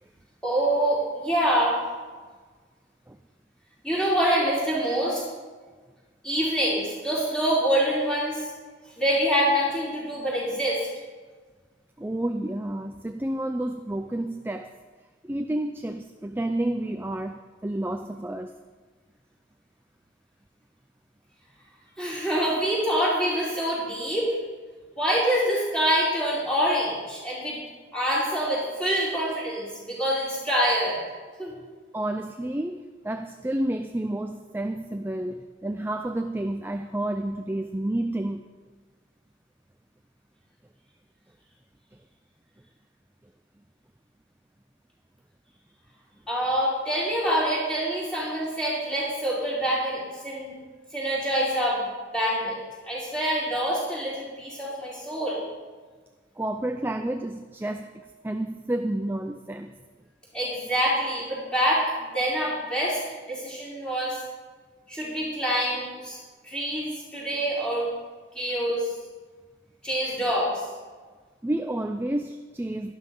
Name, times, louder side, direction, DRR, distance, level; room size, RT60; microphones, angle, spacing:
voice 1, 0.4-1.8 3.8-5.2 6.2-8.5 9.0-10.8 22.0-24.3 25.0-27.6 27.9-31.0 31.4-31.5 46.3-50.5 50.9-51.8 52.1-52.6 52.8-55.4 60.3-61.8 62.1-63.0 63.3-64.2 64.9-66.2 66.4-67.9 68.3-68.9 69.8-70.7, equal, 5° left, -7 dB, 4.6 m, -25 dB
voice 2, 12.0-14.7 15.2-18.6 31.9-38.4 56.4-59.7 71.4-72.9, right 1 dB, 10° right, 6 dB, 0.4 m, -30 dB
12.5 x 12.0 x 5.4 m, 1.4 s
head